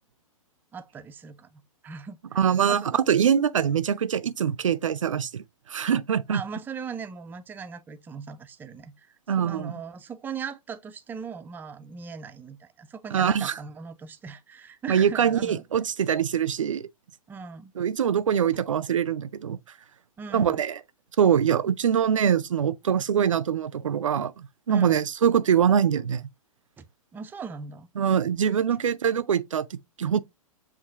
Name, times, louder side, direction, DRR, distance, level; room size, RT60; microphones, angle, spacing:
voice 1, 0.7-2.4 2.7-2.9 6.3-9.1 9.4-15.6 17.3-17.7 20.2-20.6 24.7-25.0 26.8-26.9 27.1-27.9, right 6 dB, 10° right, 0.4 m, -39 dB
voice 2, 2.4-5.4 5.7-6.4 9.3-9.7 13.1-13.5 14.9-16.9 17.8-19.6 20.3-20.8 21.2-26.2 28.0-30.2, right 8 dB, 65° right, 0.5 m, -23 dB
7.4 x 2.7 x 2.6 m
figure-of-eight pair, 110°, 18 cm